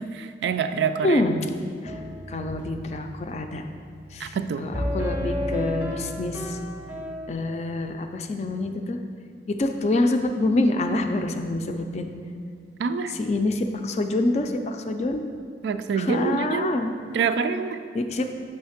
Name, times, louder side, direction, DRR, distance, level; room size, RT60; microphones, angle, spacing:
voice 1, 0.0-1.2 4.2-4.7 12.8-13.1 15.6-16.7 17.1-17.8, right 6 dB, 80° right, 10 dB, 0.3 m, -26 dB
voice 2, 1.0-1.5 1.8-1.9 2.3-3.6 4.1-6.6 7.3-9.0 9.5-12.1 13.1-15.2 16.0-16.9 17.9-18.3, left 2 dB, 40° left, 6 dB, 0.4 m, -26 dB
sound 1, 1.8-7.3, equal, 10° right, 0.6 m, -33 dB
6.4 x 3.4 x 5.7 m, 2.3 s
head